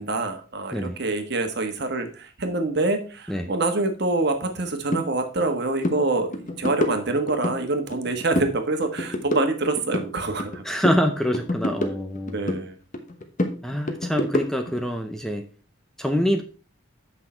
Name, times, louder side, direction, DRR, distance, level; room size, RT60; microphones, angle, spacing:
voice 1, 0.0-10.9 12.2-12.8, right 2 dB, 50° right, 6 dB, 1.4 m, -26 dB
sound 1, 4.9-5.1 5.4-5.6 5.8-6.0 6.3-7.6 7.9-8.6 8.8-10.6 10.8-12.6 12.9-14.8, left 1 dB, 35° left, 1.0 m, -28 dB
voice 2, 10.6-12.4 13.6-15.5 16.0-16.4, equal, ahead, 5 dB, 0.6 m, -25 dB
8.3 x 5.9 x 4.4 m, 0.37 s
head